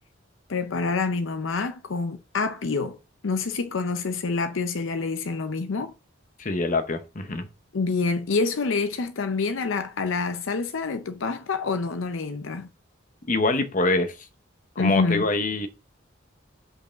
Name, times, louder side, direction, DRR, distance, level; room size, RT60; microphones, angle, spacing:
voice 1, 0.5-3.0 3.2-5.9 7.7-12.7 14.8-15.2, left 4 dB, 70° left, 0.6 m, -27 dB
voice 2, 6.4-7.5 13.3-14.2 14.8-15.7, left 2 dB, 40° left, 0.9 m, -24 dB
5.4 x 4.8 x 6.3 m
head